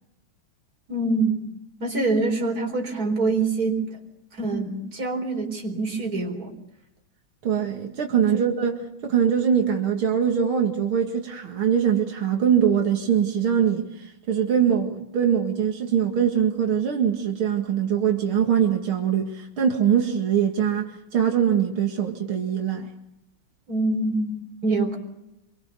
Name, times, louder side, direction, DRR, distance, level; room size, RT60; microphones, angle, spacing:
voice 1, 0.9-1.5 1.8-4.0 4.3-6.5 23.7-25.0, right 3 dB, 45° right, 4.8 m, -25 dB
voice 2, 7.4-22.9, right 8 dB, 85° right, 2.9 m, -22 dB
26.5 x 23.5 x 6.8 m
omnidirectional pair, 2.2 m